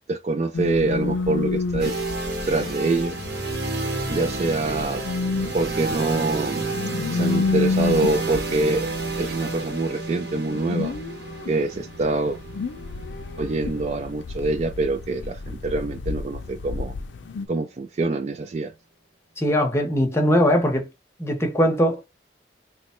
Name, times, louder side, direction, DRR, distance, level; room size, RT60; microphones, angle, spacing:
voice 1, 0.1-1.9 2.5-3.2 4.1-5.0 5.5-6.6 7.1-8.9 9.2-10.9 11.5-12.4 13.4-16.9 17.5-18.7, right 3 dB, 35° right, 0.3 m, -25 dB
sound 1, 0.5-17.5, left 4 dB, 80° left, 0.5 m, -30 dB
sound 2, 1.8-15.7, right 2 dB, 65° right, 1.0 m, -31 dB
voice 2, 19.4-20.9 21.2-22.0, equal, 15° left, 0.8 m, -20 dB
3.0 x 2.2 x 4.2 m
head